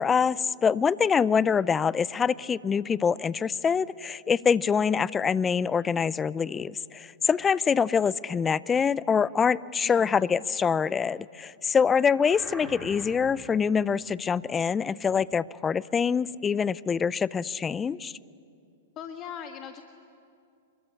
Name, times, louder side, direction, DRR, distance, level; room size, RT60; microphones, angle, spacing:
voice 1, 0.0-18.1, left 6 dB, 20° left, 20 dB, 0.5 m, -25 dB
voice 2, 9.8-10.3 18.9-19.8, left 8 dB, 35° left, 4 dB, 1.6 m, -40 dB
sound 1, 11.9-13.5, equal, 5° left, 4.8 m, -43 dB
25.5 x 22.5 x 9.8 m, 2.5 s
hypercardioid pair, 110°, 0 cm